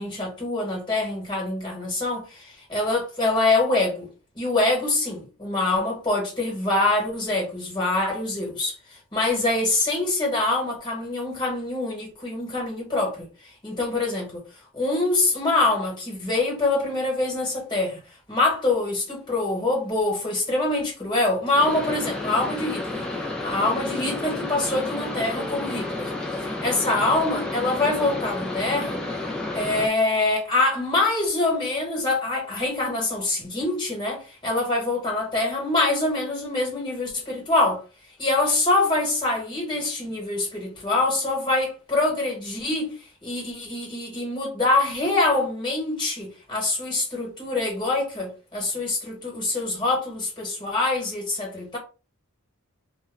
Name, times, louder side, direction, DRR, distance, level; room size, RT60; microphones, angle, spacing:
voice 1, 0.0-4.1 4.3-8.8 9.1-13.3 13.6-14.4 14.7-18.0 18.3-23.0 23.4-26.1 26.4-29.0 29.5-37.8 38.2-42.9 43.2-51.8, left 2 dB, 20° left, 1.2 m, -25 dB
sound 1, 21.5-29.9, left 2 dB, 5° left, 0.3 m, -31 dB
2.2 x 2.2 x 3.3 m
head